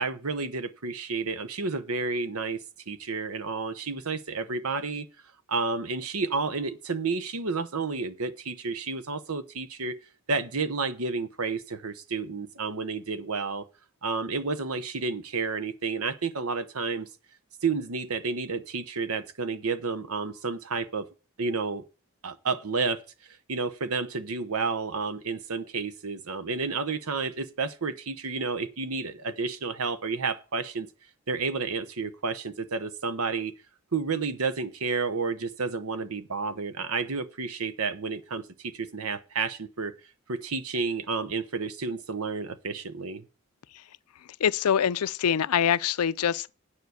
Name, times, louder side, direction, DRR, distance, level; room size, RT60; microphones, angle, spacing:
voice 1, 0.0-5.1 5.5-10.0 10.3-13.6 14.0-17.1 17.6-21.1 21.4-21.8 22.2-23.0 23.5-30.9 31.3-33.5 33.9-39.9 40.3-43.2, right 4 dB, 80° right, 1.0 m, -31 dB
voice 2, 44.4-46.5, left 8 dB, 90° left, 0.4 m, -24 dB
9.6 x 5.0 x 8.0 m
head